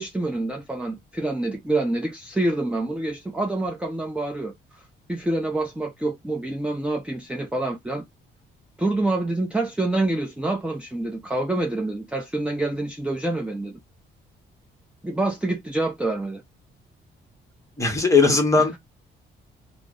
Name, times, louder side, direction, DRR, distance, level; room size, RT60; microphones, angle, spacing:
voice 1, 0.0-8.0 8.8-13.8 15.0-16.4 18.5-18.7, right 2 dB, 5° right, 0.5 m, -27 dB
voice 2, 17.8-18.8, left 4 dB, 15° left, 1.0 m, -18 dB
2.5 x 2.0 x 3.6 m
cardioid pair, 90°, 20 cm